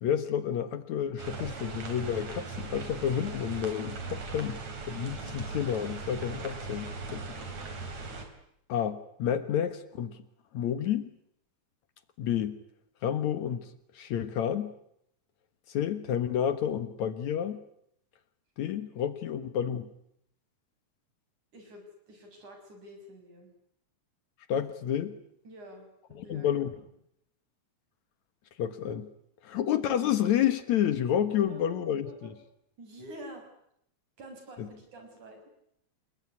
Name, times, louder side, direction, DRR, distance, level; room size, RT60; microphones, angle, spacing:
voice 1, 0.0-4.6 4.9-7.2 8.7-10.2 10.5-11.1 12.2-12.6 13.0-14.7 15.7-17.6 18.6-19.9 24.5-25.2 26.2-26.7 28.6-29.1 29.4-32.3 34.6-34.7, left 9 dB, 70° left, 11 dB, 2.7 m, -30 dB
sound 1, 1.2-8.3, right 3 dB, 65° right, 4.9 m, -39 dB
voice 2, 21.5-23.5 25.4-26.6 31.5-32.3 32.8-33.5 34.2-35.4, right 1 dB, 80° right, 4 dB, 7.8 m, -48 dB
29.5 x 20.5 x 9.7 m, 0.74 s
omnidirectional pair, 3.4 m